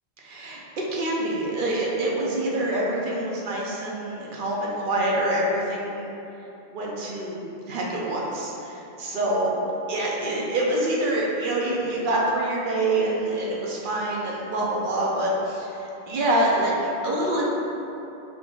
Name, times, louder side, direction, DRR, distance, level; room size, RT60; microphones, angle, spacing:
voice 1, 0.2-0.6 0.9-6.1 6.7-9.5 9.9-17.4, right 1 dB, 55° right, -4 dB, 0.7 m, -26 dB
3.7 x 2.5 x 3.7 m, 2.9 s
omnidirectional pair, 1.2 m